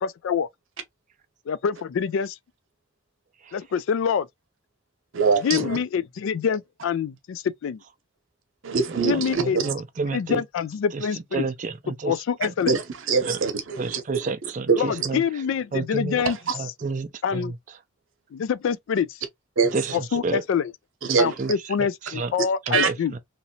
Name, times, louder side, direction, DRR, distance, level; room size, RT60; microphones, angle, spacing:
voice 1, 0.0-0.5 1.5-2.4 3.5-4.3 5.4-7.8 9.0-9.6 10.1-11.4 12.1-12.7 14.8-16.4 17.2-17.5 18.3-19.1 19.9-20.7 21.2-23.1, left 7 dB, 70° left, 0.3 m, -26 dB
voice 2, 5.1-5.8 8.6-9.7 12.7-15.1 16.2-16.5 19.6-20.0 21.0-21.5 22.7-22.9, right 5 dB, 70° right, 0.8 m, -24 dB
voice 3, 9.1-10.4 10.9-12.1 13.2-13.4 13.8-15.2 15.7-16.3 16.5-17.5 19.7-20.4 21.1-21.5 21.8-22.3 22.7-23.2, right 4 dB, 35° right, 0.4 m, -30 dB
3.0 x 2.7 x 2.7 m
head